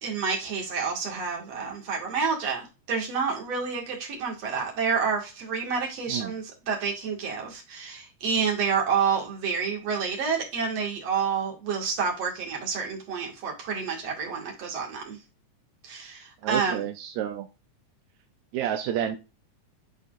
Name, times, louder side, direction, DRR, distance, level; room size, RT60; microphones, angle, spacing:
voice 1, 0.0-15.2 15.8-16.8, right 5 dB, 50° right, 0 dB, 3.0 m, -29 dB
voice 2, 16.4-17.5 18.5-19.2, right 10 dB, 75° right, 6 dB, 1.7 m, -29 dB
11.0 x 4.2 x 2.6 m, 0.28 s
omnidirectional pair, 4.0 m